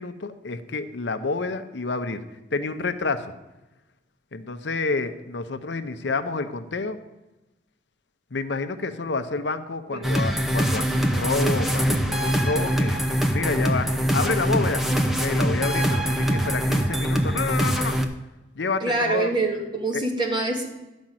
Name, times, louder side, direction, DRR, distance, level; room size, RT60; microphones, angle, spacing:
voice 1, 0.0-2.2 2.5-3.3 4.3-7.0 8.3-13.0 13.3-18.0 18.5-19.4 19.9-20.1, left 3 dB, 80° left, 10 dB, 0.7 m, -29 dB
sound 1, 10.0-18.0, equal, ahead, 0.7 m, -23 dB
voice 2, 18.8-20.7, right 2 dB, 25° right, 1 dB, 1.8 m, -25 dB
11.5 x 5.3 x 7.5 m, 1.0 s
head